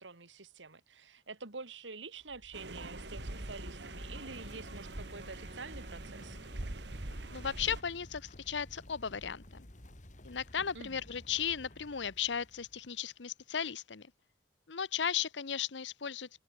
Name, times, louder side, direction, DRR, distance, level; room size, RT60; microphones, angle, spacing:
voice 1, 0.0-6.4 10.7-11.0, right 4 dB, 85° right, 2.1 m, -47 dB
sound 1, 2.2-13.0, left 1 dB, 45° left, 2.4 m, -51 dB
sound 2, 2.5-7.8, right 2 dB, 65° right, 1.6 m, -44 dB
Wind instrument woodwind instrument, 3.3-7.3, right 2 dB, 45° right, 2.0 m, -58 dB
voice 2, 7.3-9.7 10.2-14.1 14.7-16.3, left 8 dB, 75° left, 0.9 m, -36 dB
head